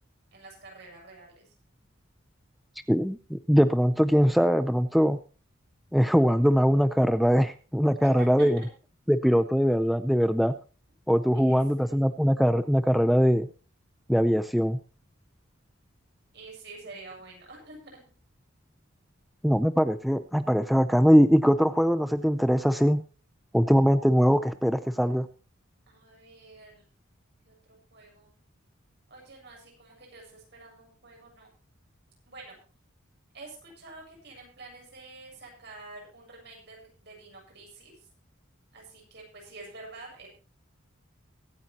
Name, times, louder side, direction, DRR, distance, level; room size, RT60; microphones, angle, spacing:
voice 1, 0.3-1.5 8.0-8.7 11.3-12.1 16.3-17.9 25.9-26.9 27.5-28.3 29.1-31.5 32.3-32.6 33.3-38.1 38.7-40.3, right 3 dB, 55° right, -1 dB, 7.6 m, -48 dB
voice 2, 2.9-5.2 5.9-8.6 9.1-10.5 11.1-13.5 14.1-14.8 19.4-23.0 23.5-25.3, equal, ahead, 11 dB, 0.5 m, -22 dB
23.0 x 9.3 x 2.9 m, 0.38 s
head